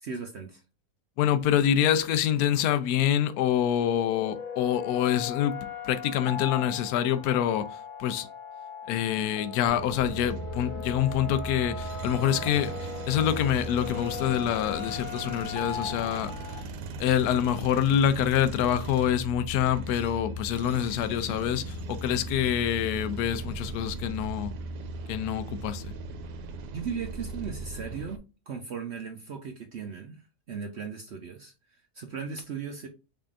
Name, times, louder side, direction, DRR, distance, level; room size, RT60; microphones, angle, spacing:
voice 1, 0.0-0.6 26.7-32.9, right 6 dB, 65° right, 0.7 m, -37 dB
voice 2, 1.2-8.3 8.9-16.3 17.0-24.5 25.1-25.9, left 10 dB, 75° left, 1.0 m, -26 dB
sound 1, 3.3-16.6, left 6 dB, 40° left, 0.8 m, -39 dB
sound 2, 9.7-28.2, right 2 dB, 85° right, 1.3 m, -38 dB
4.9 x 3.6 x 2.5 m
omnidirectional pair, 1.8 m